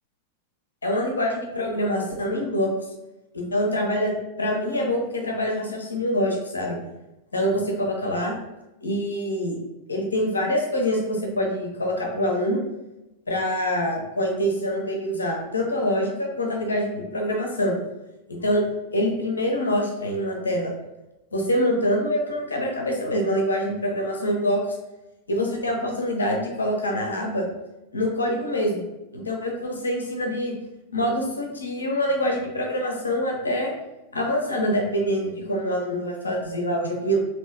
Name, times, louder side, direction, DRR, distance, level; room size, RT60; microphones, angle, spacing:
voice 1, 0.8-2.7 3.3-4.1 4.4-6.8 7.3-8.4 8.8-9.6 9.9-12.6 13.3-17.7 18.3-18.6 18.9-20.7 21.3-24.6 25.3-27.5 27.9-28.8 29.1-30.5 30.9-33.7 34.1-37.2, equal, 75° left, 0 dB, 0.8 m, -25 dB
3.0 x 3.0 x 3.3 m, 0.97 s
figure-of-eight pair, 90°, 0 cm